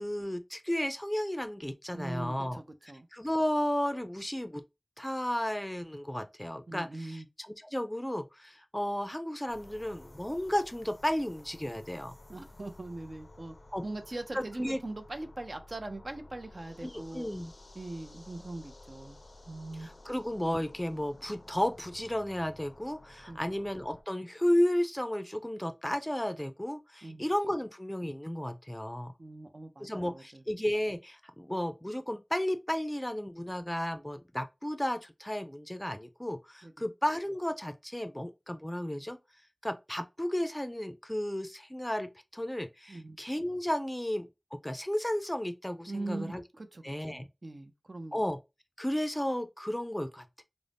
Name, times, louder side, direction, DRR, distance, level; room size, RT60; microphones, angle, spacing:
voice 1, 0.0-2.6 3.1-4.6 5.0-12.1 13.7-13.8 14.3-14.8 16.8-17.5 19.8-29.1 29.8-39.2 39.6-46.4 46.8-47.3 48.1-48.4 48.8-50.4, left 1 dB, 15° left, 0.4 m, -33 dB
voice 2, 1.9-3.1 6.7-7.3 12.3-13.5 13.8-17.3 17.8-19.2 19.5-19.9 23.3-23.5 27.0-27.3 29.2-30.4 36.6-36.8 42.9-43.2 45.9-46.8 47.1-48.2, right 2 dB, 70° right, 0.5 m, -41 dB
sound 1, 9.5-24.0, left 2 dB, 85° left, 0.4 m, -53 dB
2.5 x 2.0 x 3.3 m
wide cardioid pair, 50°, 0 cm